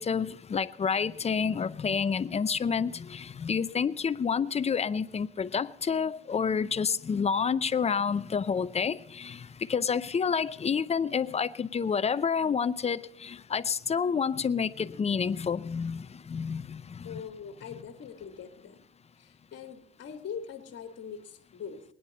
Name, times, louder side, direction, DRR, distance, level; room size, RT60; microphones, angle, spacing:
voice 1, 0.0-17.2, left 6 dB, 20° left, 0.6 m, -29 dB
voice 2, 17.0-18.8 19.2-21.8, left 7 dB, 40° left, 1.8 m, -42 dB
21.0 x 10.0 x 4.1 m
hypercardioid pair, 80°, 30 cm